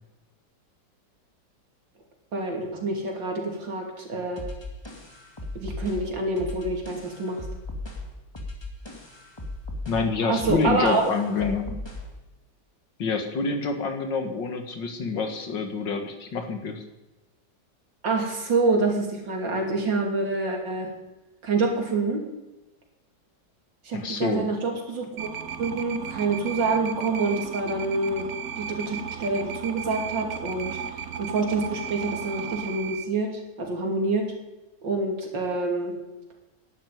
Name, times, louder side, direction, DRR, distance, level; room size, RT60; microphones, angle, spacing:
voice 1, 2.3-4.4 5.6-7.4 10.3-11.0 11.4-11.5 18.0-20.9 21.4-22.2 23.8-25.3 25.6-28.3 28.6-34.3 34.8-35.9, right 3 dB, 85° right, 1 dB, 3.6 m, -27 dB
sound 1, 4.4-12.2, left 2 dB, 15° left, 1.9 m, -37 dB
voice 2, 9.9-11.8 13.0-16.8 23.9-24.5, left 4 dB, 75° left, 6 dB, 2.5 m, -27 dB
sound 2, 25.2-33.1, right 7 dB, 55° right, 1.5 m, -35 dB
11.0 x 11.0 x 9.5 m, 1.1 s
omnidirectional pair, 2.0 m